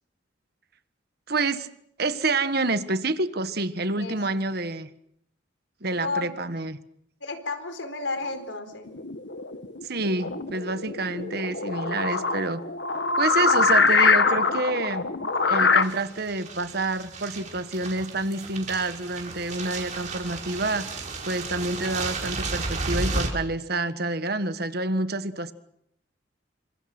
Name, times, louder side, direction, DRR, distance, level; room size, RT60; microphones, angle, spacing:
voice 1, 1.3-1.7 2.0-4.9 5.8-6.8 9.8-12.6 13.2-15.1 15.5-25.5, right 2 dB, 55° right, 11 dB, 1.6 m, -28 dB
voice 2, 5.9-6.4 7.2-8.9, left 3 dB, 85° left, 8 dB, 4.5 m, -32 dB
sound 1, 8.9-15.8, left 4 dB, 65° left, 1.7 m, -24 dB
sound 2, 15.8-23.3, right 3 dB, 40° right, 5.1 m, -33 dB
28.5 x 26.0 x 6.2 m, 0.73 s
head